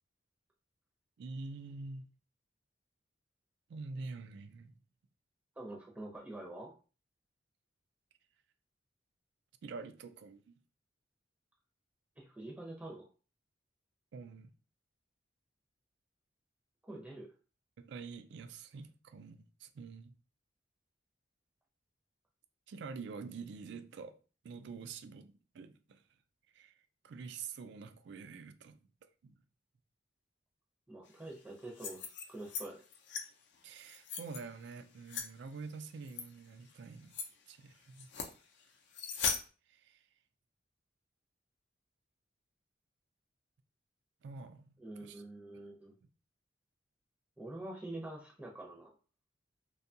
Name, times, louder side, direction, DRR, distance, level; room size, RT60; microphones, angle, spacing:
voice 1, 1.2-2.1 3.7-4.7 9.6-10.6 14.1-14.5 17.8-20.1 22.7-24.2 24.4-26.0 26.5-26.8 27.0-28.8 29.2-29.4 33.6-37.2 37.5-38.1 39.7-40.1 44.2-45.2 45.5-45.6, right 4 dB, 65° right, 0.3 m, -47 dB
voice 2, 5.6-6.7 12.2-13.1 16.8-17.3 30.9-32.8 44.8-45.9 47.4-48.9, right 1 dB, 10° right, 0.5 m, -46 dB
sound 1, 31.6-32.6 32.9-33.2 33.8-34.4 35.1-35.3 36.1-36.2 36.7-36.8 37.1-37.3 38.0-38.3 38.9-39.4, left 6 dB, 65° left, 0.5 m, -38 dB
2.7 x 2.3 x 2.7 m
head